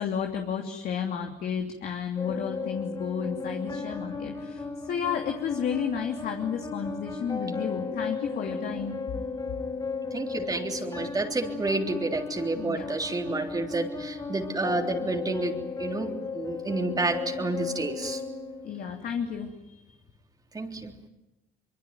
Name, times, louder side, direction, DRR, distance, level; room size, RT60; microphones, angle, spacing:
voice 1, 0.0-9.0 12.6-12.9 18.6-19.8 20.7-20.8, left 7 dB, 65° left, 3 dB, 2.9 m, -32 dB
sound 1, 2.2-19.2, left 4 dB, 25° left, 6.0 m, -35 dB
voice 2, 10.1-18.2 20.5-20.9, right 2 dB, 20° right, 2 dB, 3.5 m, -30 dB
25.0 x 23.5 x 9.4 m, 0.92 s
cardioid pair, 110°, 17 cm